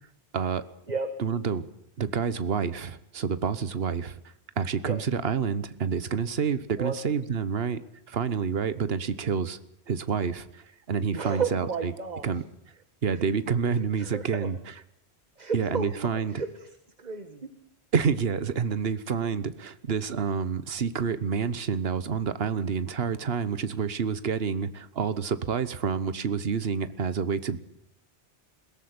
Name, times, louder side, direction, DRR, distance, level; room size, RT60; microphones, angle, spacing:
voice 1, 0.3-0.7 1.2-1.7 2.0-4.2 4.6-7.8 8.1-9.6 9.9-11.9 12.2-12.4 13.0-14.7 15.5-16.3 17.9-27.6, right 6 dB, 65° right, 14 dB, 1.4 m, -28 dB
voice 2, 11.1-12.3 14.0-14.5 15.4-16.6 17.0-17.5, right 5 dB, 40° right, 8 dB, 1.7 m, -32 dB
21.5 x 18.0 x 9.6 m, 0.70 s
omnidirectional pair, 1.1 m